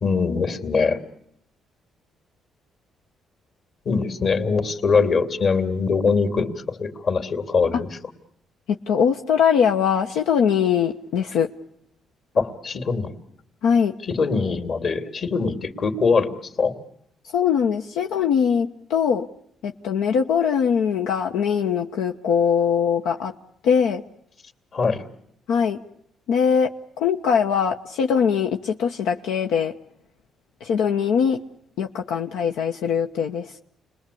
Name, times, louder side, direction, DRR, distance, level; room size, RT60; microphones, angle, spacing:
voice 1, 0.0-1.0 3.8-8.0 12.4-13.1 14.0-16.8 24.7-25.0, left 4 dB, 55° left, 6 dB, 3.0 m, -22 dB
voice 2, 8.9-11.5 13.6-13.9 17.3-19.3 19.6-23.3 23.6-24.0 25.5-25.8 26.3-26.7 27.0-29.7 30.6-31.4 31.8-33.5, left 7 dB, 90° left, 4 dB, 1.1 m, -21 dB
29.5 x 21.5 x 8.6 m, 0.74 s
cardioid pair, 95°, 0 cm